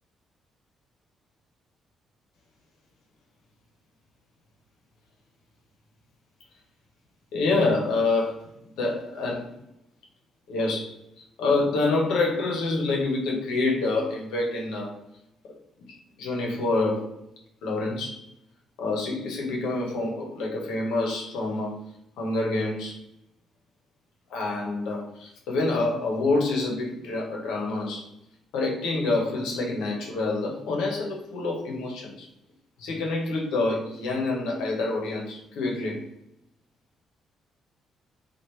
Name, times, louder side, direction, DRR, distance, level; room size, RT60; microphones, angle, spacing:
voice 1, 7.3-8.5 8.8-9.5 10.5-14.9 16.2-17.1 17.6-18.3 18.8-21.7 22.2-23.0 24.3-28.1 28.5-32.3 32.8-36.0, left 3 dB, 90° left, -1 dB, 0.9 m, -27 dB
2.9 x 2.4 x 3.2 m, 0.79 s
cardioid pair, 90°, 0 cm